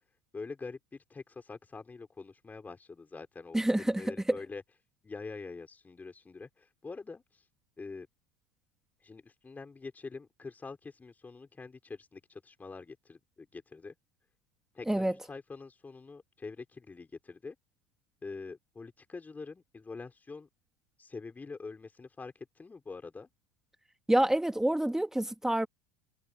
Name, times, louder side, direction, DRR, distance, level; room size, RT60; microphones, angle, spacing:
voice 1, 0.3-4.6 5.0-7.5 7.8-8.1 9.0-14.0 14.7-17.6 18.2-20.5 21.0-23.3, left 4 dB, 20° left, 5.3 m, -45 dB
voice 2, 3.5-4.0 4.3-4.4 14.9-15.1 24.1-25.7, right 1 dB, 5° right, 2.2 m, -27 dB
hypercardioid pair, 75°, 9 cm